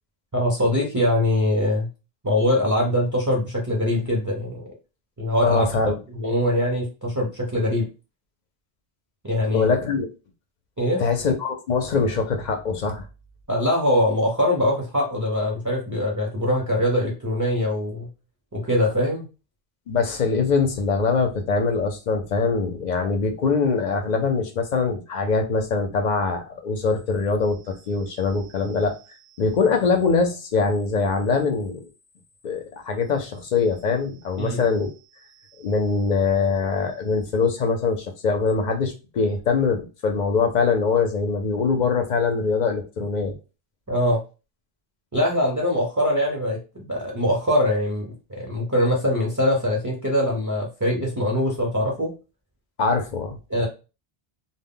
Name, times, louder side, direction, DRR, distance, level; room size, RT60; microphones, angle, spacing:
voice 1, 0.3-1.9 2.2-4.6 5.2-5.7 6.1-7.9 9.2-9.7 10.8-11.0 13.5-18.1 18.5-19.2 34.4-34.6 43.9-44.2 45.1-52.1 53.5-53.7, left 1 dB, 25° right, -1 dB, 0.5 m, -23 dB
voice 2, 5.4-6.0 9.5-10.1 11.0-13.1 19.9-31.9 32.4-34.9 35.6-43.4 52.8-53.4, left 4 dB, 55° left, 5 dB, 0.6 m, -23 dB
2.1 x 2.1 x 3.6 m, 0.30 s
omnidirectional pair, 1.0 m